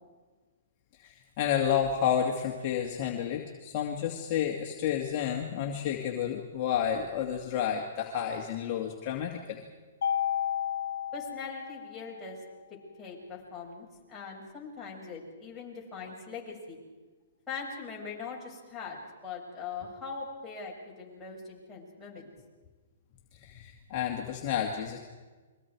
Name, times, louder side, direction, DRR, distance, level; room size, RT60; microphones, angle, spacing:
voice 1, 1.0-9.6 23.3-25.0, left 9 dB, 40° left, 0 dB, 2.3 m, -30 dB
Mallet percussion, 10.0-12.3, left 9 dB, 70° left, 0.9 m, -32 dB
voice 2, 11.1-12.4 13.0-16.8 17.5-19.0 19.2-22.3, left 5 dB, 10° left, -5 dB, 7.1 m, -41 dB
29.5 x 23.5 x 4.8 m, 1.4 s
hypercardioid pair, 140°, 0 cm